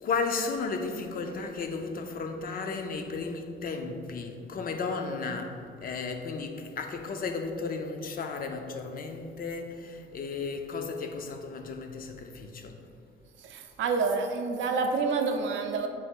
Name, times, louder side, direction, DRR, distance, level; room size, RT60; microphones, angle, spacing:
voice 1, 0.0-12.7, left 4 dB, 45° left, 5 dB, 0.4 m, -34 dB
voice 2, 13.5-15.9, right 4 dB, 70° right, 4 dB, 0.5 m, -28 dB
3.4 x 2.9 x 4.4 m, 2.4 s
cardioid pair, 90°, 20 cm